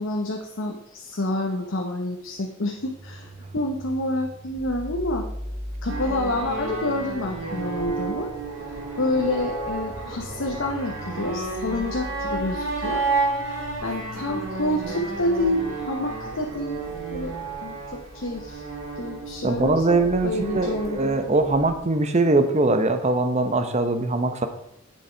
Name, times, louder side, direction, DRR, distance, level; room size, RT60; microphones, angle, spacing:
voice 1, 0.0-5.3 5.8-8.3 9.0-13.0 13.8-16.8 17.1-17.4 17.6-18.6 19.0-21.0, left 1 dB, 70° left, 1 dB, 0.9 m, -28 dB
sound 1, 2.8-16.5, equal, 15° right, 2.8 m, -40 dB
sound 2, 5.9-21.8, right 3 dB, 70° right, 2.5 m, -32 dB
voice 2, 19.4-24.5, right 2 dB, 35° right, 8 dB, 0.8 m, -22 dB
8.4 x 6.5 x 4.5 m, 0.80 s
head